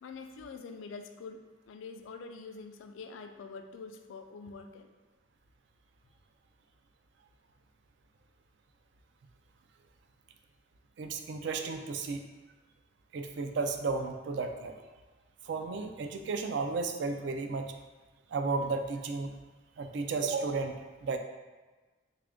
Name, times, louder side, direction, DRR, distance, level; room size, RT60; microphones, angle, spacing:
voice 1, 0.0-4.9, left 4 dB, 75° left, 7 dB, 0.3 m, -45 dB
voice 2, 11.0-12.2 13.1-14.8 15.4-17.7 18.3-19.3 19.8-20.8 21.0-21.2, right 4 dB, 60° right, 6 dB, 0.3 m, -33 dB
3.3 x 2.5 x 3.6 m, 1.3 s
head